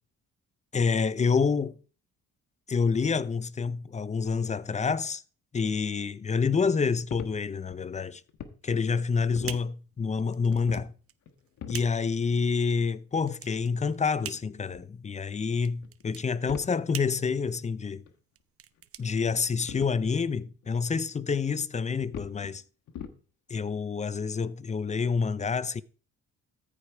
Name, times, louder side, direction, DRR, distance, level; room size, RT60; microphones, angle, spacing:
voice 1, 0.7-1.8 2.7-5.2 5.5-8.2 8.6-10.9 11.7-18.0 19.0-22.6 23.5-25.8, left 5 dB, 25° left, 0.5 m, -28 dB
sound 1, 7.1-8.5 8.9-9.7 10.3-10.9 11.3-11.9 12.3-12.5 13.6-13.7 14.7-14.8 15.8-16.0 16.4-16.7 17.1-17.2 17.4-17.5 18.1-18.2 18.8-19.2 19.6-20.0 20.6-20.7 21.2-21.3 22.0-22.5 22.9-23.2 23.6-23.7, left 8 dB, 70° left, 1.4 m, -42 dB
sound 2, 8.6-19.9, right 10 dB, 50° right, 0.7 m, -46 dB
13.5 x 5.0 x 4.6 m
cardioid pair, 90°, 30 cm